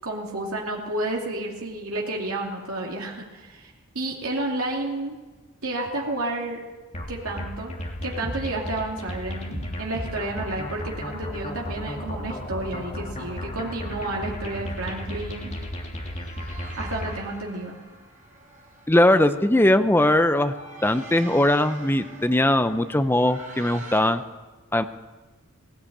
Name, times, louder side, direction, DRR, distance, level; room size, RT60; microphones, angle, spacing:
voice 1, 0.0-5.2 5.6-6.6 7.1-7.7 8.0-15.5 16.8-17.8, right 2 dB, 75° right, -2 dB, 2.7 m, -31 dB
sound 1, 6.9-17.3, equal, 30° left, 3.0 m, -34 dB
sound 2, 14.3-24.0, right 3 dB, 35° right, 5.2 m, -46 dB
voice 2, 18.9-20.5 20.8-24.2 24.7-24.8, left 1 dB, 10° left, 10 dB, 0.7 m, -20 dB
18.0 x 17.5 x 8.6 m, 1.2 s
head